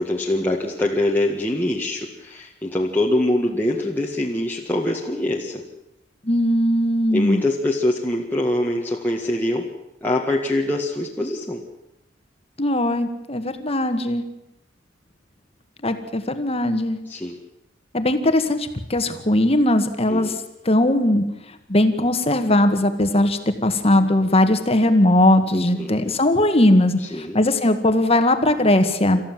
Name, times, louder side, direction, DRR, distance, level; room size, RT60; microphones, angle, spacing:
voice 1, 0.0-5.6 7.1-9.7 10.0-11.6 17.1-17.4 20.1-20.3 25.5-26.1 27.0-27.4, left 1 dB, 10° left, -3 dB, 1.9 m, -24 dB
voice 2, 6.2-7.4 12.6-14.2 15.8-17.0 17.9-20.3 20.7-21.2 21.7-29.2, left 1 dB, 35° left, 8 dB, 1.9 m, -19 dB
28.0 x 14.5 x 7.7 m, 0.89 s
head